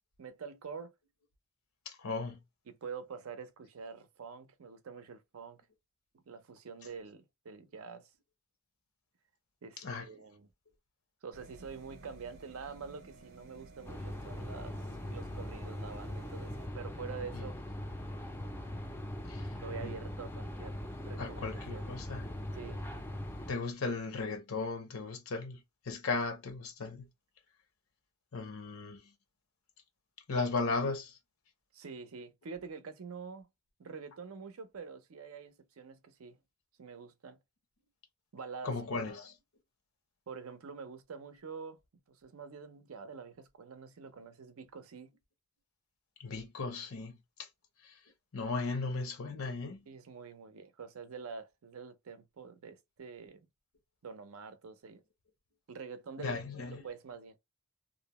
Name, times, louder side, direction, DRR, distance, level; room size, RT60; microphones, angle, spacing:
voice 1, 0.2-0.9 2.7-5.6 6.1-8.1 9.6-10.5 11.2-14.8 15.1-17.6 19.4-21.9 22.5-22.8 31.7-33.5 33.8-36.4 36.8-37.4 38.3-39.1 40.3-41.8 42.1-45.1 49.9-53.5 54.0-55.0 55.7-56.4 56.7-57.3, right 5 dB, 90° right, 0.5 m, -46 dB
voice 2, 1.9-2.4 9.8-10.0 17.3-17.4 19.3-19.5 19.8-19.9 21.2-22.3 23.5-25.6 25.9-27.1 28.3-29.0 30.3-31.1 38.6-39.3 46.2-47.1 48.3-49.8 56.2-56.8, left 3 dB, 85° left, 0.7 m, -36 dB
sound 1, 11.3-16.7, right 2 dB, 45° right, 0.6 m, -54 dB
sound 2, 13.9-23.5, left 1 dB, 10° left, 0.3 m, -41 dB
2.6 x 2.0 x 2.8 m
head